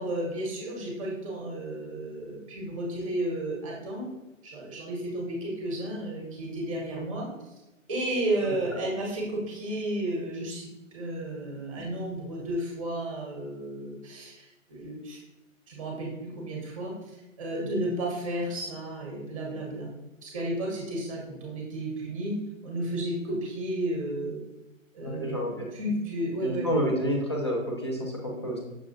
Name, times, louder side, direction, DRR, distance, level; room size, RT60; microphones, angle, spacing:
voice 1, 0.0-4.1 4.4-7.3 7.9-14.3 14.7-15.2 15.7-16.9 17.4-19.9 20.2-24.4 24.9-26.7, right 1 dB, 25° right, -2 dB, 1.0 m, -32 dB
voice 2, 25.0-25.7 26.4-28.6, equal, 20° left, -2 dB, 0.4 m, -29 dB
6.0 x 2.6 x 2.7 m, 1.0 s
figure-of-eight pair, 140°, 40 cm